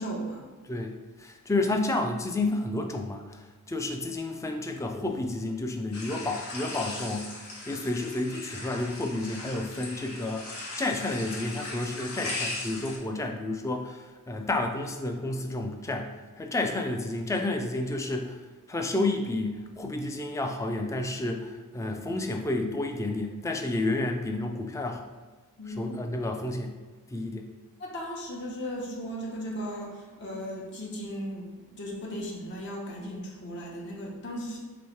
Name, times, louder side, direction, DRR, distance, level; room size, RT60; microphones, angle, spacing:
voice 1, 0.0-0.5 25.6-26.0 27.8-31.5 31.8-34.6, equal, 55° left, -1 dB, 0.8 m, -36 dB
voice 2, 0.7-3.4 3.7-7.3 7.7-10.5 10.8-16.1 16.4-18.4 18.7-25.1 25.8-26.7 27.1-27.5, left 2 dB, 15° left, 4 dB, 0.3 m, -30 dB
sound 1, 5.9-13.0, left 2 dB, 85° left, 1.0 m, -38 dB
3.1 x 3.0 x 4.4 m, 1.3 s
head